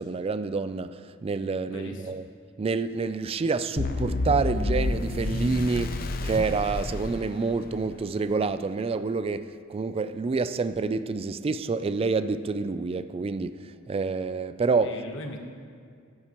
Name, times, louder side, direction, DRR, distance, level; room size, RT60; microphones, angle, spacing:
voice 1, 0.0-2.3 2.6-15.0, right 4 dB, 25° right, 0.3 m, -28 dB
voice 2, 1.7-2.1 14.8-15.4, left 2 dB, 65° left, 1.2 m, -39 dB
sound 1, 3.8-7.9, left 2 dB, 45° left, 0.6 m, -29 dB
14.5 x 11.0 x 3.0 m
head